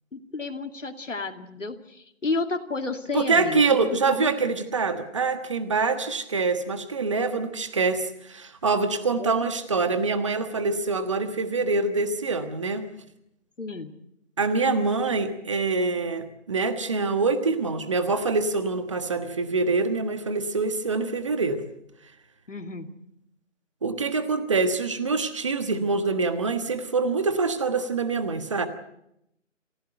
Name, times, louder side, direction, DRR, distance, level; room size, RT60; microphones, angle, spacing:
voice 1, 0.1-4.3 9.2-9.5 13.6-13.9 22.5-22.9, left 3 dB, 75° left, 5 dB, 2.5 m, -32 dB
voice 2, 3.1-12.9 14.4-21.7 23.8-28.7, right 4 dB, 25° right, 10 dB, 1.4 m, -25 dB
27.5 x 16.0 x 7.9 m, 0.79 s
figure-of-eight pair, 165°, 38 cm